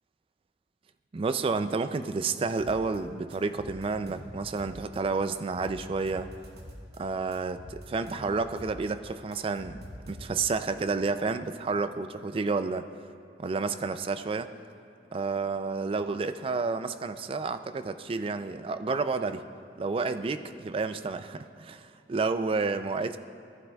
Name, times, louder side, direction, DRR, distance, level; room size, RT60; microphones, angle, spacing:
voice 1, 1.1-6.3 7.0-7.6 7.9-9.8 10.1-12.9 13.4-14.5 15.1-19.4 19.8-23.2, right 4 dB, 30° right, 10 dB, 0.3 m, -30 dB
sound 1, 2.6-3.0 3.3-5.0 5.3-7.0 7.3-8.8 9.1-10.6, equal, 65° right, 1.1 m, -45 dB
15.0 x 11.5 x 2.3 m, 2.4 s
head